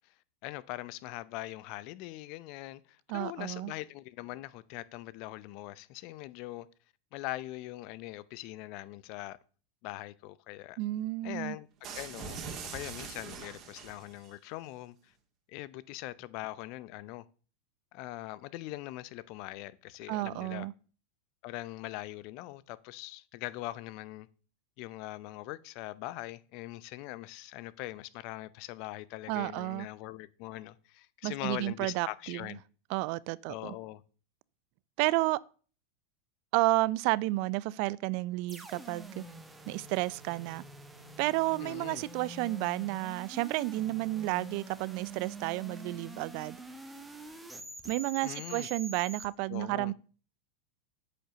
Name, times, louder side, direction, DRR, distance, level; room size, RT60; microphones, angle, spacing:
voice 1, 0.4-6.7 7.1-9.4 9.8-10.8 11.2-15.1 15.5-17.3 17.9-20.7 21.4-24.3 24.8-32.6 33.5-34.0 41.6-42.0 48.2-48.7 49.5-49.9, left 17 dB, 55° left, 0.6 m, -42 dB
voice 2, 3.1-3.7 10.8-11.6 20.1-20.7 29.3-29.9 31.2-32.5 32.9-33.7 35.0-35.4 36.5-39.2 39.7-40.6 41.2-46.6 47.8-49.9, right 20 dB, 55° right, 0.4 m, -31 dB
sound 1, 11.8-14.3, right 6 dB, 40° right, 2.1 m, -42 dB
sound 2, 38.5-49.3, right 2 dB, 10° right, 1.5 m, -46 dB
8.7 x 5.2 x 6.8 m
hypercardioid pair, 100°, 0 cm